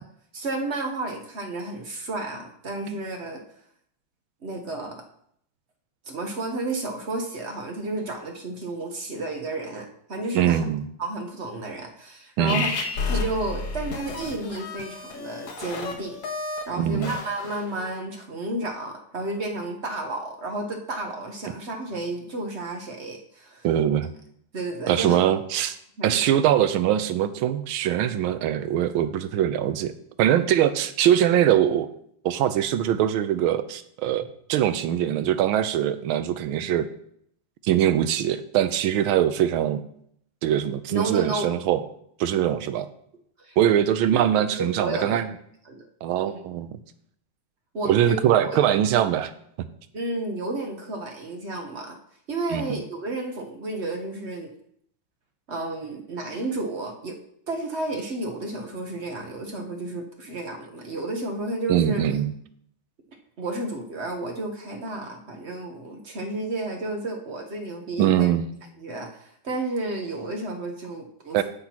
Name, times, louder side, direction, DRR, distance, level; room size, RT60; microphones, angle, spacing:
voice 1, 0.3-3.4 4.4-5.0 6.1-10.6 11.0-12.7 13.1-16.2 16.7-23.7 24.5-25.2 26.0-26.2 40.9-41.5 43.4-43.6 44.0-44.3 44.6-45.3 45.7-45.8 46.2-46.4 47.7-48.2 48.4-48.6 49.9-52.0 52.3-54.5 55.5-57.2 57.5-62.0 63.4-68.3 68.8-71.4, right 2 dB, 45° right, 3 dB, 0.9 m, -32 dB
voice 2, 10.3-10.8 12.4-12.7 16.8-17.1 23.6-24.1 24.9-25.8 26.0-29.9 30.2-31.9 32.2-36.9 37.6-39.8 40.4-41.8 42.2-42.9 43.6-45.3 46.0-46.8 47.8-49.3 49.6-49.7 52.5-52.8 61.7-62.3 68.0-68.5 71.3-71.4, right 10 dB, 80° right, 12 dB, 1.4 m, -22 dB
sound 1, 12.5-17.9, left 4 dB, 85° left, 2.2 m, -32 dB
16.5 x 5.9 x 2.9 m, 0.70 s
omnidirectional pair, 2.4 m